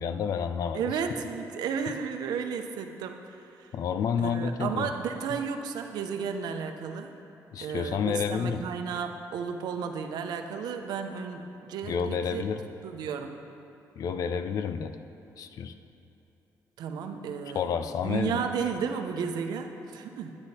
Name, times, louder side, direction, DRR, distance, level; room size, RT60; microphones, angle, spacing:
voice 1, 0.0-0.8 3.7-4.9 7.5-8.6 11.8-12.6 14.0-15.0 15.4-15.7 17.5-18.4, left 7 dB, 55° left, 9 dB, 0.5 m, -29 dB
voice 2, 0.7-3.7 4.2-7.1 7.6-12.4 12.8-13.4 16.8-17.7 18.0-20.4, right 6 dB, 80° right, 5 dB, 0.8 m, -33 dB
9.9 x 9.8 x 4.2 m, 3.0 s
cardioid pair, 160°, 7 cm